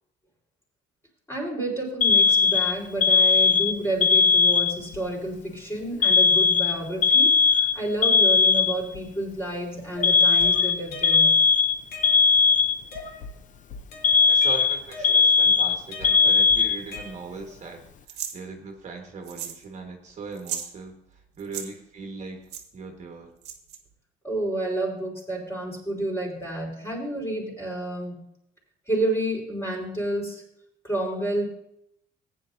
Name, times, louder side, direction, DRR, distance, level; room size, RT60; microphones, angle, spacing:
voice 1, 1.3-11.3 24.2-28.2 28.9-30.4 30.8-31.4, right 1 dB, 15° left, -2 dB, 4.3 m, -30 dB
Alarm, 2.0-5.0 6.0-9.0 10.0-13.0 14.0-17.0, left 5 dB, 50° left, 0.7 m, -19 dB
sound 1, 9.9-11.4 11.7-12.5 12.9-13.4 13.7-15.5 15.9-17.5, left 3 dB, 70° left, 2.2 m, -40 dB
voice 2, 14.3-22.5 22.7-23.3, right 4 dB, 45° right, 2 dB, 1.6 m, -39 dB
sound 2, 18.1-18.4 19.3-19.6 19.9-20.0 20.3-20.7 21.4-21.7 22.5-22.6 23.4-23.8, right 9 dB, 80° right, 1.5 m, -35 dB
15.5 x 9.3 x 2.7 m, 0.76 s
cardioid pair, 110°, 17 cm